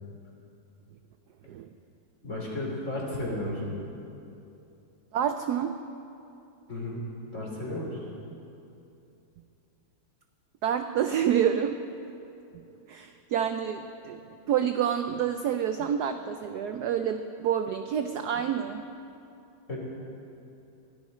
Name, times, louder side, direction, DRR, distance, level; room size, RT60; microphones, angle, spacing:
voice 1, 2.2-3.7 6.7-7.0 7.3-8.0 19.7-19.8, left 1 dB, 35° left, -3 dB, 3.7 m, -33 dB
voice 2, 5.1-5.8 10.6-11.8 12.9-14.2 14.5-18.8, right 9 dB, 70° right, 8 dB, 0.9 m, -28 dB
23.0 x 13.5 x 4.3 m, 2.7 s
omnidirectional pair, 2.2 m